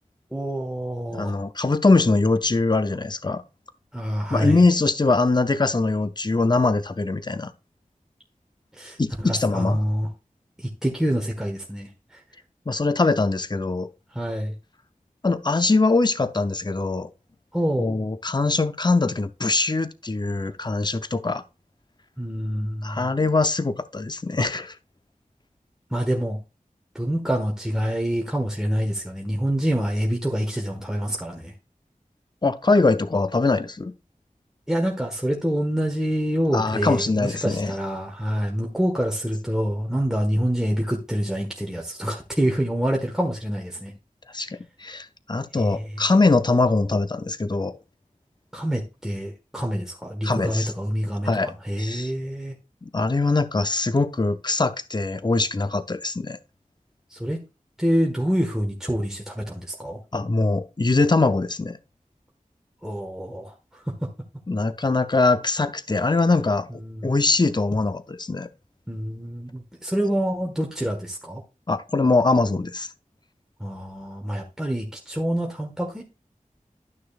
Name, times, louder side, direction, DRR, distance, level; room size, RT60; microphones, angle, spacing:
voice 1, 0.3-1.4 3.9-4.6 8.7-10.1 10.6-12.2 14.1-14.5 17.5-17.9 22.2-23.1 25.9-26.4 26.9-31.5 34.7-43.9 45.5-46.0 48.5-52.5 57.1-57.4 57.8-60.0 62.8-63.9 66.7-67.1 68.9-71.4 73.6-76.0, equal, 5° right, 1.4 m, -26 dB
voice 2, 1.1-3.4 4.3-7.5 9.0-9.8 12.7-13.9 15.2-17.1 17.8-21.4 22.8-24.7 32.4-33.9 36.5-37.7 44.3-47.8 50.2-50.7 51.3-52.1 52.8-56.4 60.1-61.8 64.5-66.7 67.0-68.5 71.7-72.9, left 3 dB, 30° left, 0.6 m, -22 dB
12.0 x 6.1 x 2.4 m
wide cardioid pair, 45°, 14 cm